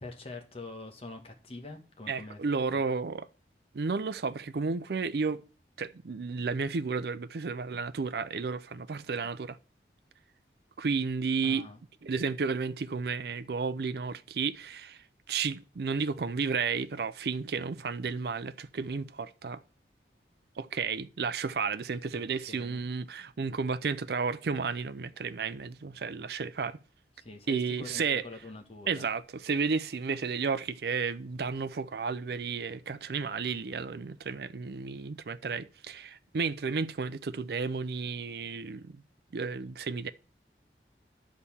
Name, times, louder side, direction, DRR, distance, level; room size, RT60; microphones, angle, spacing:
voice 1, 0.0-2.4 2.7-2.8 11.4-11.8 22.1-22.2 22.5-22.8 27.2-29.1, left 2 dB, 35° left, 1.4 m, -44 dB
voice 2, 2.1-3.3 3.7-5.4 5.8-9.6 10.8-11.7 12.0-19.6 20.6-26.8 27.5-28.2 28.9-39.0 39.3-40.1, right 5 dB, 60° right, 0.5 m, -32 dB
10.0 x 4.2 x 7.1 m
head